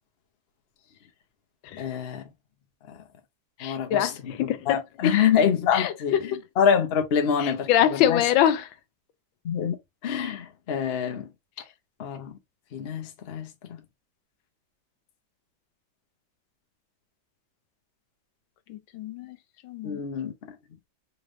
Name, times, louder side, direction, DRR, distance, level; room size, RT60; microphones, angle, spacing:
voice 1, 1.8-2.2 2.9-3.0 3.6-8.2 9.4-9.8 10.0-11.3 12.0-12.3 12.7-13.8 19.8-20.5, left 7 dB, 50° left, 0.8 m, -26 dB
voice 2, 3.6-5.2 5.7-6.3 7.4-8.7 18.7-19.4 19.6-20.0, left 11 dB, 85° left, 1.4 m, -25 dB
4.2 x 3.3 x 2.5 m
omnidirectional pair, 2.1 m